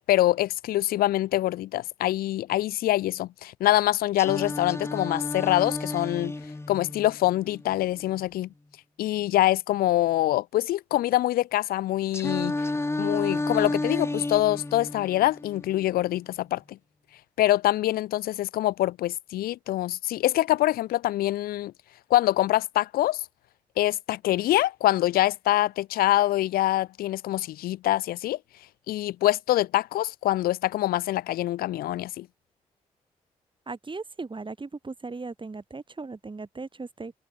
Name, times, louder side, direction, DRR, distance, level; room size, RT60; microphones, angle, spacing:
voice 1, 0.1-6.3 6.7-8.5 9.0-12.6 13.0-16.8 17.4-21.7 22.1-23.2 23.8-28.4 28.9-32.3, left 15 dB, 80° left, 0.9 m, -25 dB
Singing, 4.2-8.2 12.1-16.2, left 2 dB, 15° left, 1.1 m, -32 dB
voice 2, 33.7-37.1, right 3 dB, 35° right, 2.6 m, -37 dB
hypercardioid pair, 40°, 15 cm